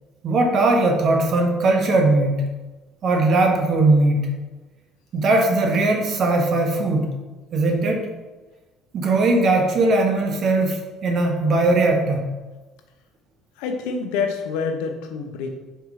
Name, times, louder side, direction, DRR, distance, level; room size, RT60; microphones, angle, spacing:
voice 1, 0.2-2.5 3.0-4.3 5.1-7.1 7.5-8.1 8.9-12.3, right 2 dB, 50° right, 3 dB, 1.2 m, -19 dB
voice 2, 13.6-15.6, left 5 dB, 90° left, 4 dB, 0.9 m, -27 dB
4.7 x 4.6 x 4.9 m, 1.2 s
cardioid pair, 110°, 0 cm